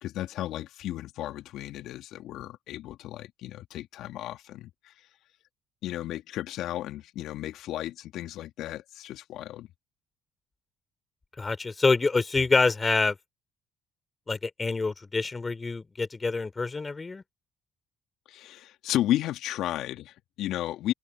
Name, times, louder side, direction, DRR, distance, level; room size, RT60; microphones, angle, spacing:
voice 1, 0.0-4.9 5.8-9.7 18.3-20.9, left 13 dB, 70° left, 3.0 m, -33 dB
voice 2, 11.4-13.2 14.3-17.2, left 3 dB, 25° left, 3.3 m, -26 dB
open air
hypercardioid pair, 55°, 0 cm